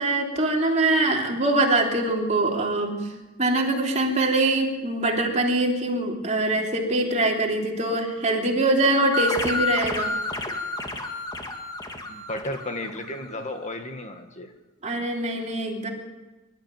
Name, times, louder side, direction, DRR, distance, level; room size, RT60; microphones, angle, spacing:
voice 1, 0.0-3.0 3.4-10.1 14.8-15.9, right 2 dB, 35° right, 0 dB, 3.4 m, -23 dB
sound 1, 9.1-13.5, left 2 dB, 20° left, 2.2 m, -30 dB
voice 2, 12.1-14.5, left 1 dB, 35° left, 5 dB, 1.8 m, -33 dB
24.5 x 13.0 x 9.2 m, 1.2 s
head